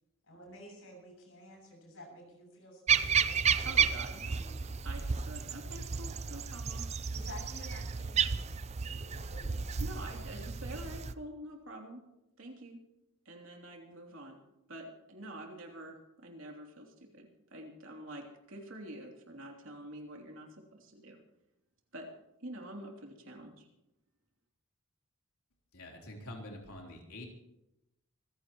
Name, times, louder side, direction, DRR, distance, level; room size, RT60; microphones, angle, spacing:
voice 1, 0.2-3.8 4.1-4.8 7.1-9.8 10.3-10.4, left 1 dB, 65° left, 1 dB, 7.4 m, -52 dB
sound 1, 2.9-11.1, right 6 dB, 30° right, 0.5 m, -32 dB
voice 2, 3.6-4.4 4.8-6.9 9.8-12.1 12.4-12.9 13.2-14.4 14.7-21.2 21.9-22.1 22.4-23.7, right 1 dB, 65° right, 1 dB, 3.1 m, -47 dB
voice 3, 25.7-27.3, left 1 dB, 85° left, 0 dB, 3.6 m, -46 dB
26.0 x 15.0 x 3.1 m, 0.88 s
head